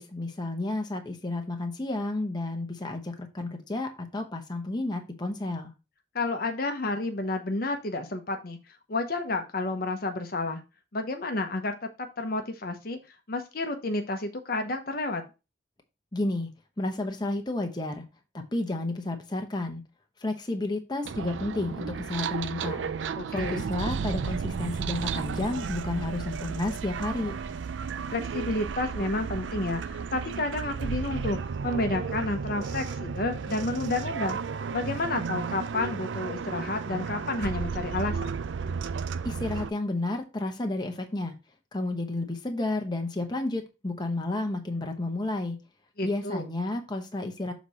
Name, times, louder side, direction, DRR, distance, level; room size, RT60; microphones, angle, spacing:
voice 1, 0.0-5.7 16.1-16.5 16.8-18.0 18.3-19.8 20.2-22.9 23.3-27.3 39.2-41.3 41.7-45.6 46.0-47.5, left 2 dB, 20° left, 4 dB, 0.9 m, -31 dB
voice 2, 6.1-8.6 8.9-10.6 10.9-11.7 12.2-13.0 13.3-15.2 23.2-23.6 28.1-34.4 34.7-38.4 46.0-46.5, left 2 dB, 50° left, 6 dB, 0.9 m, -30 dB
sound 1, 21.0-39.7, right 6 dB, 75° right, 0.4 m, -33 dB
6.6 x 4.1 x 4.2 m, 0.28 s
head